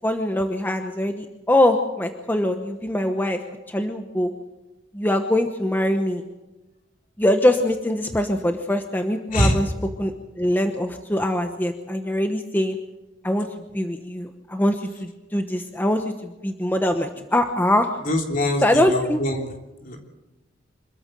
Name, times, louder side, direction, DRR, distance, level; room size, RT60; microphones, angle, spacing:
voice 1, 0.0-3.4 3.7-4.3 4.9-6.2 7.2-9.7 10.0-12.8 13.2-13.5 13.7-17.9 18.6-19.2, left 1 dB, 10° left, 5 dB, 1.0 m, -23 dB
voice 2, 18.1-19.4 19.8-20.0, equal, 45° left, 2 dB, 3.4 m, -23 dB
25.5 x 14.0 x 7.6 m, 1.1 s
head